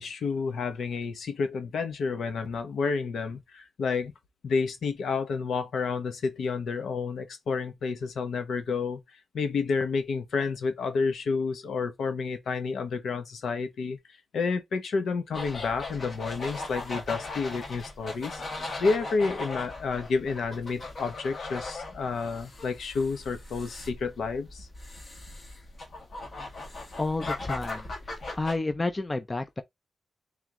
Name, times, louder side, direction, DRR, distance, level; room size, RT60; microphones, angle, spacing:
voice 1, 0.0-4.1 4.4-9.0 9.3-14.0 14.3-18.4 18.8-24.7, left 4 dB, 75° left, 0.9 m, -30 dB
sound 1, 15.3-28.6, left 2 dB, 45° left, 1.5 m, -39 dB
voice 2, 27.0-27.9 28.3-29.6, left 2 dB, 20° left, 0.5 m, -30 dB
3.5 x 2.9 x 3.7 m
wide cardioid pair, 140°, 0 cm